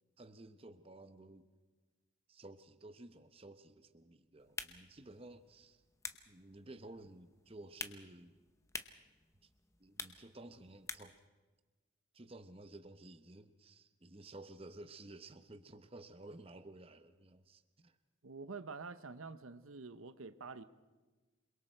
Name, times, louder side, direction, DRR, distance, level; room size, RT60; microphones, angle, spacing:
voice 1, 0.2-1.5 2.3-5.8 6.3-8.4 9.4-9.5 9.8-11.2 12.1-18.0, right 2 dB, 25° right, 10 dB, 0.9 m, -54 dB
sound 1, 4.4-11.3, left 4 dB, 15° left, 0.8 m, -50 dB
voice 2, 18.2-20.6, right 4 dB, 75° right, 12 dB, 0.8 m, -47 dB
28.5 x 22.0 x 4.5 m, 1.3 s
head